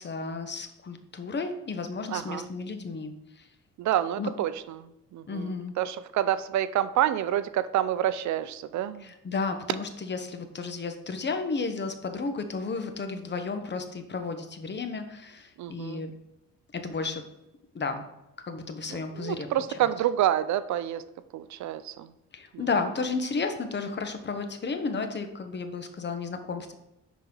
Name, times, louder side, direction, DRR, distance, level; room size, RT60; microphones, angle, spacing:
voice 1, 0.0-3.5 4.2-4.3 5.3-5.7 9.0-16.1 16.7-17.2 17.7-18.0 18.5-19.5 19.8-19.9 22.3-26.7, left 4 dB, 35° left, 7 dB, 1.1 m, -33 dB
voice 2, 2.1-2.4 3.8-9.1 15.6-16.0 18.9-21.0 21.3-22.1 22.5-22.6, right 11 dB, 70° right, 14 dB, 0.5 m, -28 dB
10.5 x 4.1 x 3.9 m, 0.89 s
cardioid pair, 90°, 30 cm